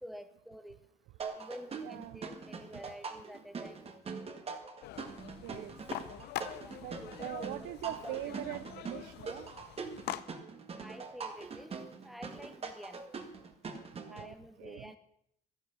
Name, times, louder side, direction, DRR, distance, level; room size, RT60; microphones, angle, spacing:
voice 1, 0.0-0.8 1.3-4.2 6.6-8.2 10.7-13.1 14.1-15.0, equal, ahead, 9 dB, 1.3 m, -49 dB
sound 1, 1.2-14.3, right 5 dB, 35° right, 1.7 m, -43 dB
voice 2, 1.8-2.2 5.4-5.8 6.8-9.5 14.0-14.9, right 16 dB, 85° right, 15 dB, 0.5 m, -42 dB
sound 2, 4.8-10.2, left 13 dB, 75° left, 0.8 m, -44 dB
11.5 x 11.0 x 6.9 m, 0.72 s
cardioid pair, 110°, 17 cm